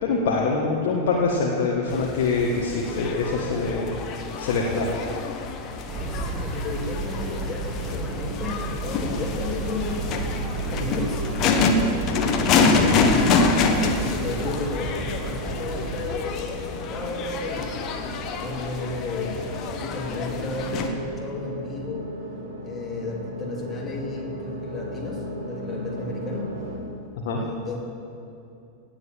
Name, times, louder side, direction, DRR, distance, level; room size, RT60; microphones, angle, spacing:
voice 1, 0.0-3.9 4.4-4.9 27.2-27.4, left 4 dB, 50° left, -2 dB, 1.7 m, -24 dB
sound 1, 1.9-20.9, left 4 dB, 35° left, 1.3 m, -26 dB
sound 2, 5.9-16.1, right 4 dB, 20° right, 1.5 m, -33 dB
voice 2, 6.1-10.2 10.5-12.2 12.8-17.7 18.3-22.1 22.6-26.5 27.2-27.8, left 3 dB, 20° left, -2 dB, 2.8 m, -33 dB
sound 3, 7.4-26.8, right 1 dB, 60° right, 2.2 m, -38 dB
18.0 x 7.2 x 7.4 m, 2.7 s
figure-of-eight pair, 90°, 0 cm